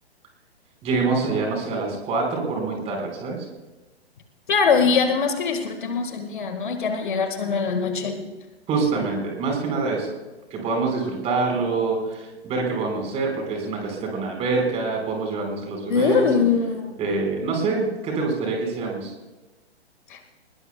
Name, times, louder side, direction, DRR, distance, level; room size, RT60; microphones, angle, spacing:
voice 1, 0.8-3.5 8.7-10.1 10.5-16.2 17.0-19.1, right 4 dB, 20° right, 1 dB, 4.6 m, -25 dB
voice 2, 4.5-8.3 15.9-17.0 20.1-20.2, left 5 dB, 50° left, 7 dB, 1.7 m, -22 dB
24.5 x 20.5 x 2.3 m, 1.1 s
figure-of-eight pair, 120°, 32 cm